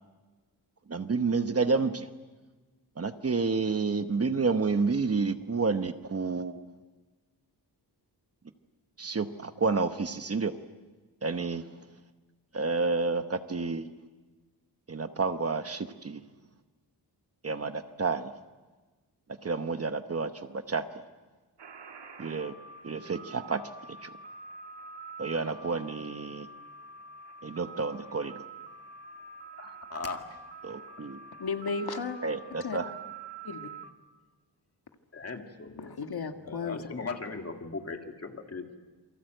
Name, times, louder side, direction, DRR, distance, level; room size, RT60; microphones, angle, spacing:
voice 1, 0.9-2.1 3.0-6.6 9.0-10.5 11.2-11.6 12.5-13.8 14.9-16.2 17.4-18.3 19.4-20.8 22.2-22.5 22.8-23.6 24.0-24.1 25.2-26.5 27.4-28.3 30.6-31.2 32.2-32.9, right 4 dB, 35° right, 9 dB, 1.0 m, -30 dB
sound 1, 21.6-33.9, right 3 dB, 90° right, 1.5 m, -46 dB
voice 2, 29.6-30.4 35.1-35.9 36.5-38.8, left 4 dB, 35° left, 4 dB, 2.2 m, -38 dB
voice 3, 31.4-32.2 32.6-32.8 33.4-33.7 35.8-36.9, left 5 dB, 65° left, 6 dB, 1.7 m, -34 dB
28.0 x 23.5 x 7.9 m, 1.3 s
wide cardioid pair, 175°, 41 cm